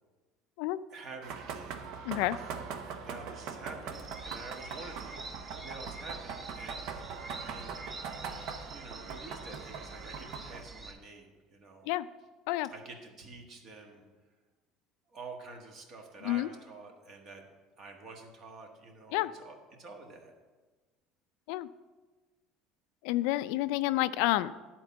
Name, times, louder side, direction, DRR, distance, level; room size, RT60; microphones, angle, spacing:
voice 1, 0.9-1.7 2.4-7.1 7.5-7.8 8.6-11.9 12.7-14.0 15.1-17.4 17.8-20.3, right 3 dB, 40° right, 3 dB, 1.4 m, -48 dB
sound 1, 1.2-10.6, right 6 dB, 60° right, 0.8 m, -42 dB
voice 2, 2.1-2.4 11.9-12.1 12.5-12.7 16.3-16.5 19.1-19.3 21.5-21.7 23.0-24.5, left 16 dB, 75° left, 15 dB, 0.3 m, -29 dB
sound 2, 3.9-10.9, right 3 dB, 15° right, 0.7 m, -46 dB
10.5 x 4.4 x 7.0 m, 1.3 s
cardioid pair, 155°, 0 cm